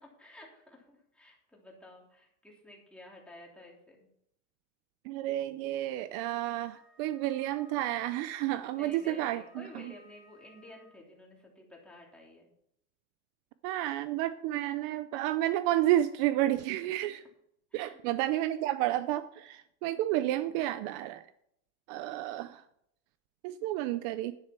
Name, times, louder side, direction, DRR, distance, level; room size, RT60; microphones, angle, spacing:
voice 1, 0.0-4.1 8.7-12.5 17.7-18.0, left 1 dB, 5° left, -2 dB, 3.2 m, -52 dB
voice 2, 5.0-9.9 13.6-17.2 17.7-21.3 21.9-22.6 23.4-24.3, right 14 dB, 55° right, 13 dB, 0.6 m, -31 dB
Wind instrument woodwind instrument, 6.4-11.1, left 2 dB, 35° right, 4.8 m, -61 dB
10.5 x 9.8 x 4.5 m, 0.74 s
supercardioid pair, 140°, 38 cm